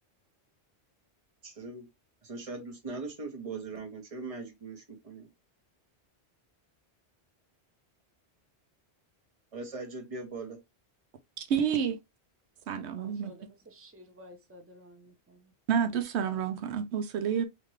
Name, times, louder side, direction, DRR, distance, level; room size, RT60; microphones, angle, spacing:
voice 1, 1.4-1.8 2.2-5.3 9.5-10.6, right 3 dB, 35° right, 1.0 m, -40 dB
voice 2, 11.4-12.0 12.7-13.3 15.7-17.4, right 7 dB, 90° right, 0.9 m, -29 dB
voice 3, 13.0-15.5, equal, 15° right, 0.8 m, -53 dB
3.6 x 2.9 x 3.1 m
omnidirectional pair, 1.1 m